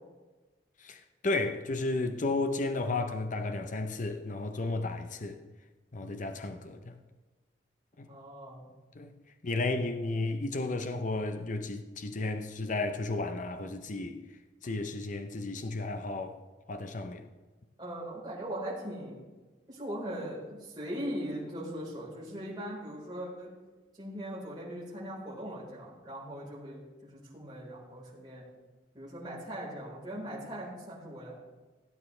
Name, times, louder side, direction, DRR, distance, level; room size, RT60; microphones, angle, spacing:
voice 1, 0.8-5.4 5.9-6.9 8.0-8.1 8.9-9.1 9.4-14.2 14.6-16.4 16.7-17.2, left 2 dB, 45° left, 0.7 m, -33 dB
voice 2, 8.1-8.7 17.8-19.2 19.7-23.5 24.0-28.4 28.9-31.3, equal, 25° right, 4.3 m, -40 dB
17.0 x 9.2 x 3.3 m
head